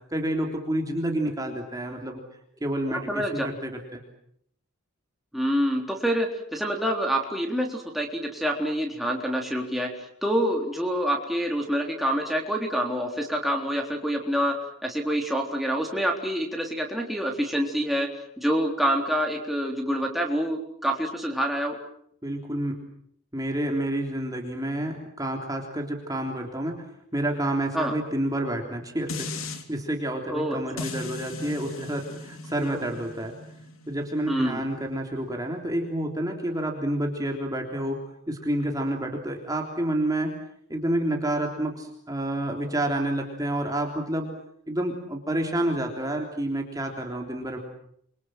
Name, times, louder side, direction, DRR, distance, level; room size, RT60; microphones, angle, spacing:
voice 1, 0.1-2.2 2.6-4.0 22.2-22.8 23.3-26.8 27.1-29.3 29.7-33.4 33.9-38.0 38.3-40.4 40.7-44.3 44.7-47.6, right 1 dB, 15° right, 2 dB, 3.4 m, -29 dB
voice 2, 2.9-3.5 5.3-14.5 14.8-18.1 18.4-21.8 27.7-27.9 30.3-30.8 34.3-34.6, equal, ahead, 0 dB, 3.8 m, -27 dB
sound 1, 29.1-29.6 30.8-35.9 36.4-36.5, left 3 dB, 65° left, 3.3 m, -38 dB
28.5 x 24.5 x 7.7 m, 0.69 s
head